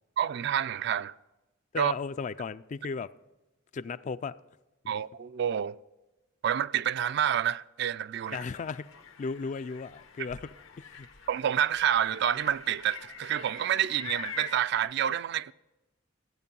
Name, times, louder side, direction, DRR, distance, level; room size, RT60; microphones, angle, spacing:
voice 1, 0.2-1.1 1.8-1.9 4.9-5.8 6.4-8.4 11.3-15.5, right 9 dB, 60° right, 0.3 m, -28 dB
voice 2, 1.7-3.1 3.7-4.4 4.8-4.9 8.3-8.9 9.2-10.5 10.8-11.1, left 5 dB, 40° left, 0.3 m, -35 dB
sound 1, 8.3-14.8, left 5 dB, 85° left, 1.2 m, -45 dB
14.5 x 8.9 x 5.4 m
head